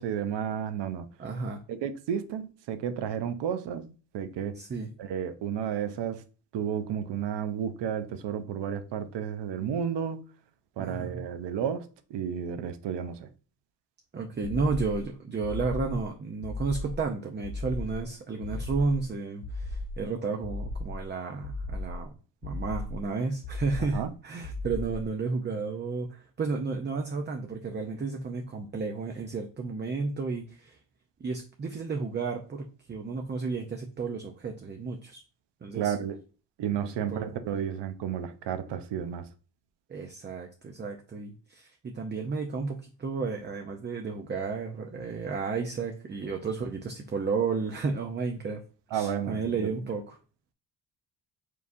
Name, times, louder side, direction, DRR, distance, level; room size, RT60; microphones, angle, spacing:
voice 1, 0.0-1.1 1.7-4.6 5.0-6.2 6.5-10.2 10.8-13.3 23.9-24.1 35.7-36.2 36.6-39.2 48.9-49.7, right 8 dB, 75° right, 0.7 m, -32 dB
voice 2, 1.2-1.6 4.5-4.9 10.8-11.2 14.1-22.1 22.4-30.8 31.2-35.2 35.6-35.9 36.8-37.4 39.9-48.6 48.9-50.2, right 4 dB, 25° right, 0.5 m, -32 dB
sound 1, 14.4-15.1 15.4-16.1 16.4-17.1 17.4-18.1 18.4-19.1 19.4-20.1 20.4-21.1 21.4-22.1 22.4-23.1 23.4-24.1 24.4-25.1, left 2 dB, 70° left, 0.6 m, -36 dB
4.7 x 3.5 x 2.6 m
cardioid pair, 100°, 42 cm